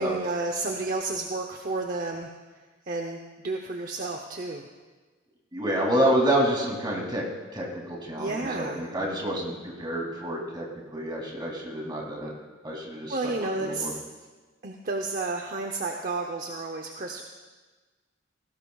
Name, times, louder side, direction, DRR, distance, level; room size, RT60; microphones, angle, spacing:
voice 1, 0.0-2.3 2.8-4.7 8.2-8.8 13.1-13.9 14.6-17.2, right 3 dB, 45° right, 3 dB, 0.7 m, -31 dB
voice 2, 5.5-7.3 7.5-10.7 10.9-12.3 12.6-13.3 13.6-13.9, right 1 dB, 25° right, -2 dB, 2.7 m, -28 dB
19.0 x 16.5 x 2.4 m, 1.3 s
head